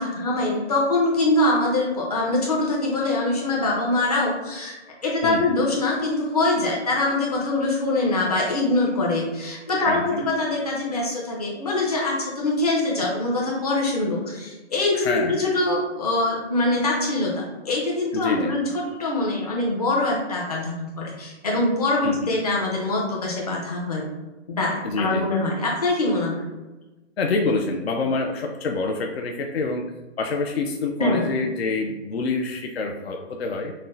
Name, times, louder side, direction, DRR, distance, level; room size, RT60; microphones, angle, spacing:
voice 1, 0.0-4.8 5.0-18.6 19.0-24.0 24.5-26.4 31.0-31.2, left 2 dB, 35° left, -3 dB, 0.8 m, -23 dB
voice 2, 9.8-10.3 14.9-15.5 18.1-18.6 22.0-22.2 24.8-25.3 27.2-33.7, left 3 dB, 60° left, 2 dB, 0.5 m, -27 dB
5.9 x 2.1 x 2.6 m, 1.1 s
hypercardioid pair, 175°, 36 cm